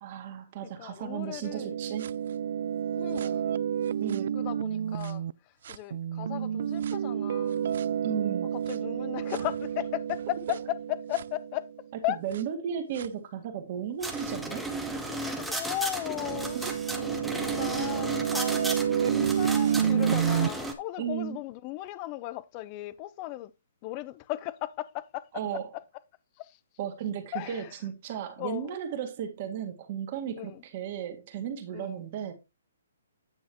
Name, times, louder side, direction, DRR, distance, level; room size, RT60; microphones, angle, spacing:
voice 1, 0.0-2.1 4.0-4.4 8.0-8.5 12.2-14.7 17.3-17.4 21.0-21.4 25.3-25.7 26.8-32.3, right 9 dB, 35° right, 1.8 m, -35 dB
voice 2, 0.8-1.7 3.0-3.5 4.3-7.8 8.5-11.7 12.0-12.2 15.2-16.6 17.5-23.5 23.8-25.6 26.4-26.6 27.3-27.7 28.4-28.8 30.4-30.6 31.7-32.0, left 16 dB, 25° left, 0.6 m, -36 dB
sound 1, 1.4-5.3 5.6-11.8 12.3-12.4 13.0-13.1 14.1-14.2 15.0-15.1 16.0-20.5, right 9 dB, 55° right, 0.3 m, -30 dB
sound 2, 14.0-20.7, right 2 dB, ahead, 1.0 m, -34 dB
9.5 x 6.3 x 3.0 m
hypercardioid pair, 160°, 0 cm